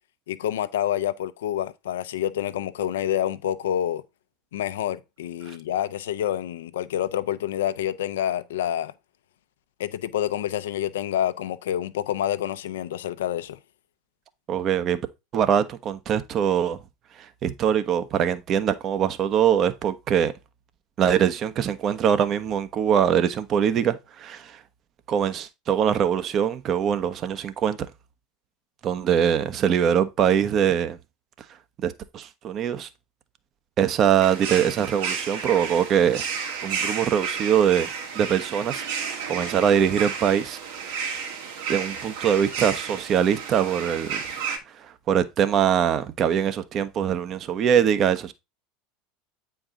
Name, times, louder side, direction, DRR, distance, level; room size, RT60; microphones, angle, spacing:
voice 1, 0.3-4.0 4.5-8.9 9.8-13.6, left 11 dB, 75° left, 0.7 m, -27 dB
voice 2, 14.5-15.0 15.3-16.8 17.2-20.3 21.0-24.6 25.1-27.8 28.8-31.0 31.8-32.9 33.8-36.2 36.6-37.9 38.1-40.6 41.7-44.2 44.7-48.3, right 8 dB, 45° right, 1.1 m, -23 dB
sound 1, 34.2-44.6, right 6 dB, 70° right, 2.2 m, -32 dB
8.9 x 4.7 x 3.8 m
hypercardioid pair, 85°, 0 cm